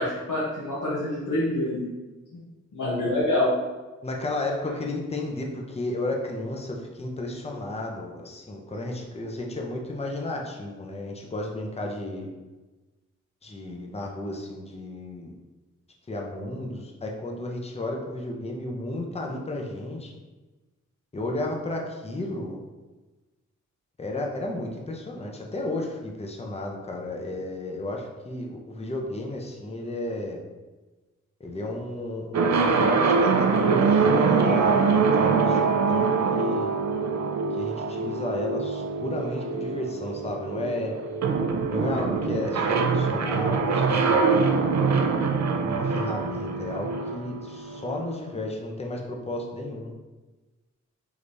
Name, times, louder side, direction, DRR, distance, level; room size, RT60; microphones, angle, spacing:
voice 1, 0.0-1.9 2.7-3.5, left 1 dB, 90° left, -7 dB, 1.0 m, -26 dB
voice 2, 4.0-12.3 13.4-15.3 16.1-20.1 21.1-22.6 24.0-30.4 31.4-35.6 35.9-36.8 37.6-41.0 41.6-44.6 45.6-49.9, left 2 dB, 20° left, 0 dB, 0.6 m, -33 dB
sound 1, 32.3-48.1, right 5 dB, 65° right, 0.5 m, -24 dB
4.9 x 3.3 x 2.6 m, 1.2 s
wide cardioid pair, 105°, 30 cm